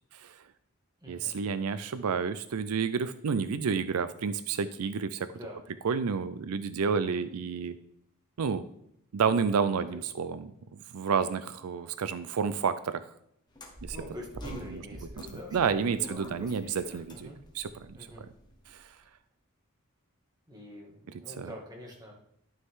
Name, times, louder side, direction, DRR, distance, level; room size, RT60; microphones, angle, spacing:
voice 1, 0.1-0.4 1.1-5.3 5.8-7.7 8.4-8.6 9.1-13.0 13.8-14.0 14.4-14.8 15.2-18.0 18.7-19.0 21.4-21.5, right 6 dB, 80° right, 13 dB, 0.5 m, -30 dB
voice 2, 1.0-1.3 5.3-5.6 6.8-6.9 9.9-10.0 13.9-17.4 17.9-18.2 20.5-22.1, equal, 20° right, -1 dB, 2.0 m, -45 dB
sound 1, 13.5-18.8, left 1 dB, 20° left, 1.3 m, -47 dB
12.0 x 6.4 x 3.7 m, 0.73 s
head